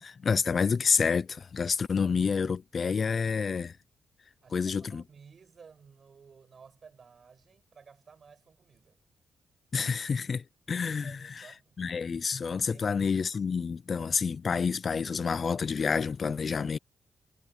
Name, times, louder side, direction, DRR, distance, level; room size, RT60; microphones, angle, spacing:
voice 1, 0.0-3.7 4.5-5.0 9.7-11.1 11.8-16.8, left 5 dB, 50° left, 0.6 m, -28 dB
voice 2, 4.4-9.0 11.0-11.8 12.7-13.0, right 6 dB, 55° right, 6.6 m, -55 dB
cardioid pair, 65°, 0 cm